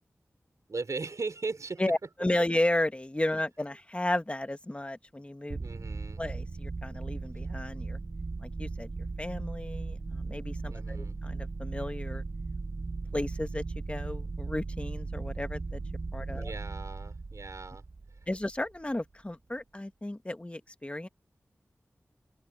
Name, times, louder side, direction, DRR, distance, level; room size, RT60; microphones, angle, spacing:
voice 1, 0.7-1.8 5.6-6.2 10.7-11.2 16.3-17.8, right 3 dB, 70° right, 3.3 m, -38 dB
voice 2, 1.8-5.6 6.2-8.0 8.4-8.9 9.2-12.2 13.1-15.8 16.1-16.5 18.3-21.1, left 1 dB, 20° left, 1.5 m, -33 dB
sound 1, 5.5-18.8, right 3 dB, 40° right, 0.4 m, -37 dB
wide cardioid pair, 85°, 6 cm